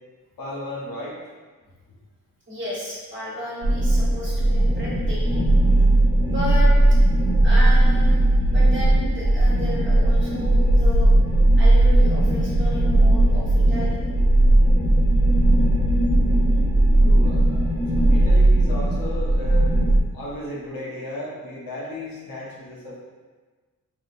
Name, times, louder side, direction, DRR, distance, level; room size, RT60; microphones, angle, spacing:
voice 1, 0.4-1.2 17.0-19.7 20.1-23.0, left 1 dB, 75° left, -5 dB, 1.1 m, -35 dB
voice 2, 2.5-5.5 5.8-5.9 6.2-6.7 7.4-11.1 11.5-14.0, left 1 dB, 35° right, -8 dB, 1.2 m, -33 dB
sound 1, 3.6-20.0, right 1 dB, 15° right, 0.4 m, -17 dB
3.7 x 3.0 x 2.5 m, 1.4 s
wide cardioid pair, 140°, 35 cm